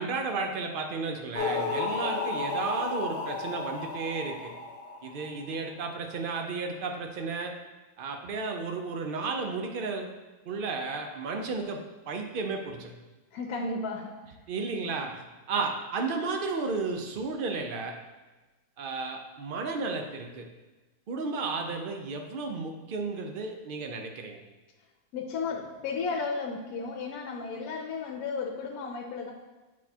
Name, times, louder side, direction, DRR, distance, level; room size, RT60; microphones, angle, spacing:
voice 1, 0.0-4.5 5.0-7.5 8.0-10.1 10.5-12.9 14.5-18.0 18.8-20.5 21.1-24.4, right 4 dB, 75° right, 4 dB, 0.5 m, -33 dB
sound 1, 1.3-5.6, left 3 dB, 50° left, 0.7 m, -33 dB
voice 2, 13.3-14.2 25.1-29.3, left 4 dB, 75° left, 2 dB, 1.1 m, -34 dB
8.0 x 4.7 x 2.8 m, 1.2 s
omnidirectional pair, 1.6 m